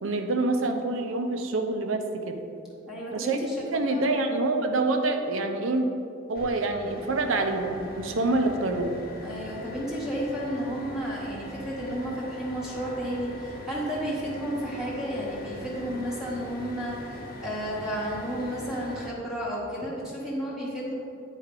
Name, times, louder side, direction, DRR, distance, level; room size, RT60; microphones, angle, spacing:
voice 1, 0.0-2.3 3.1-3.4 3.7-5.9 6.3-9.0, right 2 dB, 75° right, 5 dB, 0.6 m, -26 dB
voice 2, 2.9-3.6 3.9-4.1 9.2-20.9, equal, 5° right, -6 dB, 1.0 m, -32 dB
sound 1, 6.3-19.1, left 1 dB, 45° left, 0.8 m, -42 dB
8.9 x 4.6 x 3.7 m, 2.5 s
head